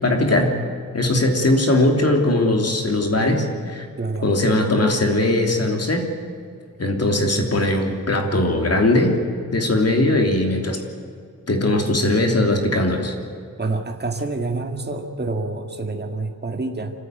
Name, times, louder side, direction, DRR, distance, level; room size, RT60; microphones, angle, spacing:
voice 1, 0.0-0.5 0.9-3.9 4.2-6.0 6.8-9.2 9.5-10.8 11.5-13.1, left 1 dB, 45° left, 3 dB, 3.1 m, -19 dB
voice 2, 4.0-4.3 13.6-16.9, right 3 dB, 30° right, 4 dB, 1.9 m, -27 dB
25.5 x 14.5 x 9.2 m, 2.3 s
wide cardioid pair, 150°, 35 cm